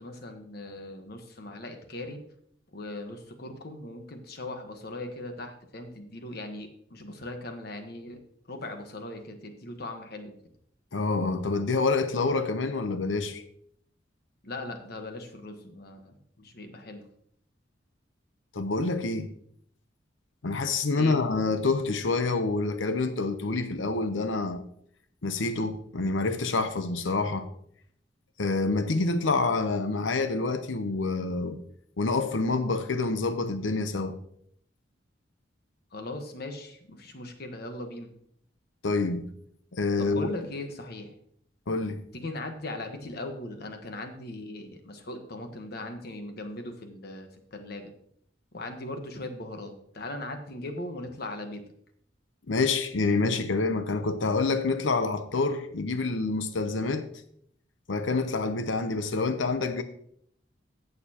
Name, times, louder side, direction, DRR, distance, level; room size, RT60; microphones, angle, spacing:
voice 1, 0.0-2.2 2.7-8.2 8.4-10.3 14.4-17.0 21.0-21.2 35.9-38.1 40.0-41.1 42.1-47.9 48.5-51.6, left 1 dB, 55° left, 1.3 m, -39 dB
voice 2, 10.9-13.4 18.5-19.3 20.4-24.6 25.2-27.5 28.4-31.6 32.0-34.2 38.8-39.2 39.7-40.3 41.7-42.0 52.5-57.0 57.9-59.8, left 3 dB, 80° left, 0.8 m, -27 dB
15.0 x 6.8 x 2.9 m
head